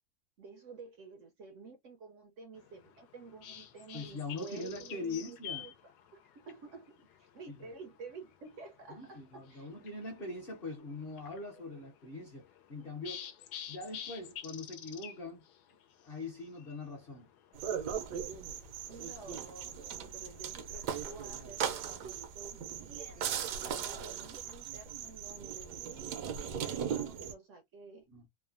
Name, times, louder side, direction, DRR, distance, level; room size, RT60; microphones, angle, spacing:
voice 1, 0.4-9.7 10.2-10.3 11.6-11.7 18.9-26.2 26.5-28.1, right 4 dB, 70° right, 0.7 m, -51 dB
sound 1, 2.6-22.0, left 9 dB, 80° left, 1.1 m, -51 dB
voice 2, 3.9-5.7 7.5-7.7 8.9-12.4 12.7-13.3 13.7-15.4 16.0-17.3 28.1-28.2, left 3 dB, 50° left, 0.8 m, -42 dB
sound 2, 17.5-27.3, right 8 dB, 90° right, 1.2 m, -38 dB
3.2 x 2.1 x 2.4 m
omnidirectional pair, 1.7 m